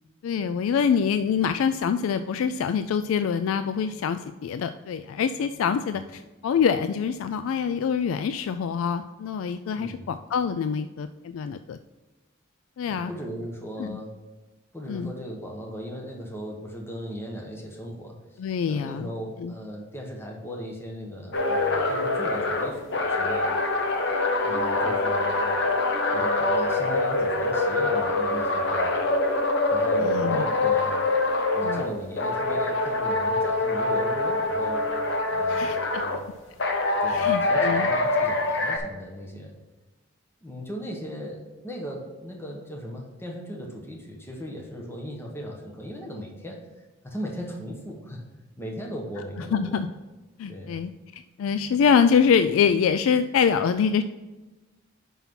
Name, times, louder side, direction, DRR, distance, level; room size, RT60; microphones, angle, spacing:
voice 1, 0.2-11.8 12.8-13.1 13.8-14.0 14.9-15.1 18.4-19.1 19.4-19.5 30.0-30.4 31.6-31.8 35.5-36.0 37.1-37.9 49.5-49.9 50.4-54.0, left 6 dB, 85° left, 10 dB, 0.3 m, -25 dB
voice 2, 9.8-10.1 12.9-14.1 14.7-23.5 24.1-24.2 24.4-25.5 26.1-29.0 29.7-31.0 31.5-34.9 35.3-36.2 37.0-39.5 40.4-46.7 47.0-48.2 48.6-49.8 50.5-50.8, equal, 10° left, 0 dB, 1.1 m, -37 dB
sound 1, 21.3-31.9 32.2-36.2 36.6-38.8, left 2 dB, 65° left, 1.0 m, -24 dB
5.7 x 5.5 x 6.0 m, 1.1 s
head